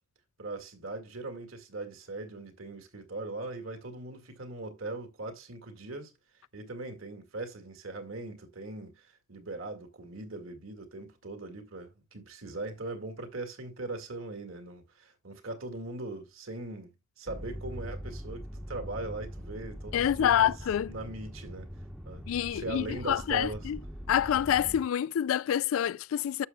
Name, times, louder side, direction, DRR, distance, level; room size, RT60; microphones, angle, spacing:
voice 1, 0.4-6.1 6.5-20.5 20.9-21.7 22.1-22.2 22.5-23.7, right 2 dB, 80° right, 2.0 m, -40 dB
sound 1, 17.3-24.8, equal, ahead, 0.9 m, -42 dB
voice 2, 19.9-20.9 22.3-23.8 24.1-26.5, left 10 dB, 80° left, 0.3 m, -27 dB
11.0 x 6.7 x 2.3 m
head